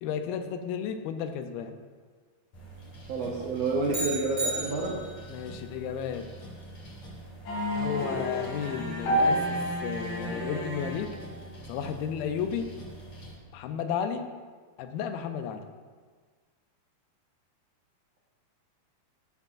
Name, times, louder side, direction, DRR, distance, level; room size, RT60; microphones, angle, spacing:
voice 1, 0.0-1.8 5.3-6.3 7.7-11.2 11.7-12.7 13.5-14.3 14.8-15.7, left 8 dB, 80° left, 8 dB, 2.4 m, -33 dB
sound 1, 2.5-13.3, right 1 dB, 50° left, 3.7 m, -45 dB
voice 2, 3.1-4.9, right 3 dB, 75° right, -3 dB, 1.5 m, -29 dB
sound 2, 3.9-5.3, right 1 dB, 55° right, 0.9 m, -33 dB
sound 3, 7.5-11.4, equal, 65° left, 3.3 m, -30 dB
14.0 x 7.1 x 2.5 m, 1.5 s
omnidirectional pair, 4.3 m